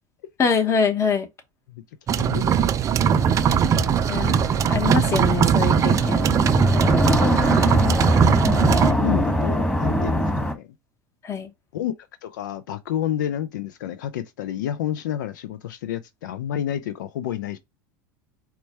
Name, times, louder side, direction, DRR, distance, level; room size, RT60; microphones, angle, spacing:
voice 1, 0.4-1.3 4.1-4.4 4.7-6.3 11.2-11.5, left 6 dB, 30° left, 1.0 m, -23 dB
voice 2, 2.1-2.7 3.5-4.0 7.2-8.1 8.9-10.7 11.7-11.9 12.2-17.6, left 11 dB, 85° left, 0.4 m, -30 dB
sound 1, 2.1-8.9, right 8 dB, 35° right, 0.4 m, -20 dB
sound 2, 3.1-10.5, equal, 15° left, 1.5 m, -23 dB
4.4 x 2.2 x 4.2 m
hypercardioid pair, 100°, 10 cm